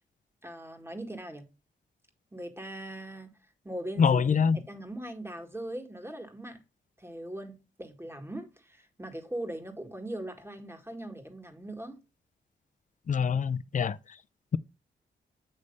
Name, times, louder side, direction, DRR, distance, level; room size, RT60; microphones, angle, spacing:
voice 1, 0.4-1.4 2.3-3.3 3.6-4.2 4.5-6.6 7.0-12.0, right 1 dB, 10° right, 2.0 m, -40 dB
voice 2, 4.0-4.6 13.1-14.0, left 6 dB, 40° left, 0.5 m, -24 dB
8.4 x 3.3 x 5.3 m
cardioid pair, 60°, 19 cm